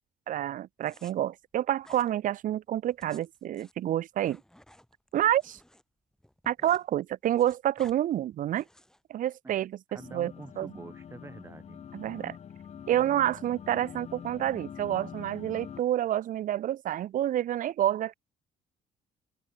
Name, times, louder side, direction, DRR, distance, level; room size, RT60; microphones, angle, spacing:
voice 1, 0.3-4.4 5.1-5.6 6.5-8.6 9.1-10.7 11.9-12.4 12.9-18.1, right 12 dB, 50° right, 0.5 m, -28 dB
sound 1, 0.8-1.1 1.8-2.1 2.8-5.8 6.1-6.9 7.1-8.0 8.5-9.0, left 1 dB, 5° left, 6.9 m, -55 dB
voice 2, 9.9-11.8, right 3 dB, 15° right, 2.9 m, -46 dB
sound 2, 10.0-15.8, left 8 dB, 40° left, 1.2 m, -45 dB
cardioid pair, 110°, 17 cm